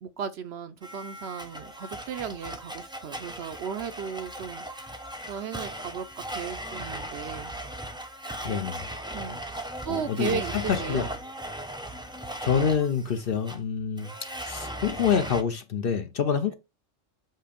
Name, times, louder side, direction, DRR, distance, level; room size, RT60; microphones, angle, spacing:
voice 1, 0.0-4.7 5.3-7.5 9.1-9.4 9.8-11.1, right 7 dB, 65° right, 0.8 m, -35 dB
Domestic sounds home sounds, 0.8-15.4, right 1 dB, 5° right, 0.4 m, -38 dB
voice 2, 8.4-8.8 9.9-11.1 12.4-14.1 14.4-16.5, left 7 dB, 55° left, 0.7 m, -27 dB
7.5 x 2.7 x 5.0 m
omnidirectional pair, 1.3 m